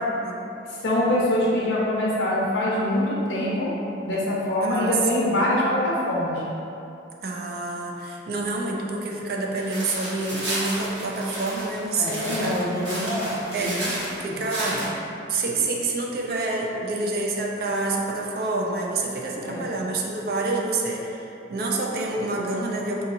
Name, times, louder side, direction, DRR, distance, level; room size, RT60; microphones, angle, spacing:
voice 1, 0.8-3.7 4.0-6.4 12.0-13.8 14.2-14.7 19.4-19.7, left 1 dB, 70° left, -6 dB, 0.8 m, -24 dB
voice 2, 4.6-5.0 5.2-5.4 7.2-12.9 13.5-14.8 15.3-23.0, right 2 dB, 50° right, -1 dB, 0.4 m, -28 dB
sound 1, 9.6-14.9, right 1 dB, 70° right, 1.1 m, -32 dB
4.8 x 2.8 x 2.6 m, 2.8 s
head